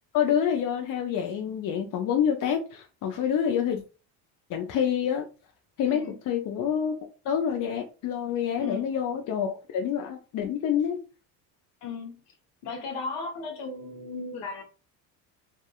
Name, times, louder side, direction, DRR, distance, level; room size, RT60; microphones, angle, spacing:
voice 1, 0.1-3.8 4.5-5.3 5.8-6.9 7.2-11.0, left 8 dB, 45° left, 0.6 m, -27 dB
voice 2, 5.8-6.2 8.6-8.9 11.8-12.1 12.6-14.6, left 4 dB, 65° left, 1.0 m, -36 dB
2.6 x 2.4 x 2.3 m
supercardioid pair, 75°, 45 cm